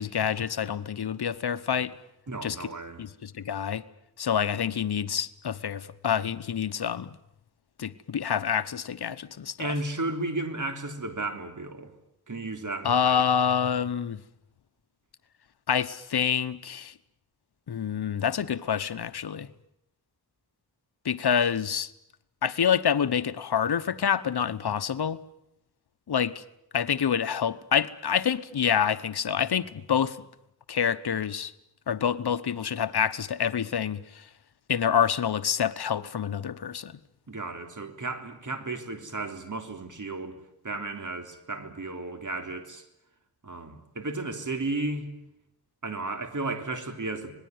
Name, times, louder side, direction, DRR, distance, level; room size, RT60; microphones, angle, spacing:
voice 1, 0.0-1.9 2.4-2.6 3.0-3.8 4.2-7.1 7.8-9.7 12.8-14.2 15.7-16.9 17.7-19.5 21.0-21.9 22.4-25.2 26.1-26.4 26.7-30.2 30.7-31.5 31.9-34.3 34.7-37.0, left 8 dB, 85° left, 1.0 m, -27 dB
voice 2, 2.3-3.0 9.6-11.9 12.3-13.2 37.3-40.4 40.6-42.8 43.4-45.1 45.8-47.3, right 2 dB, 50° right, 3.6 m, -34 dB
26.5 x 20.0 x 9.5 m
wide cardioid pair, 80°, 38 cm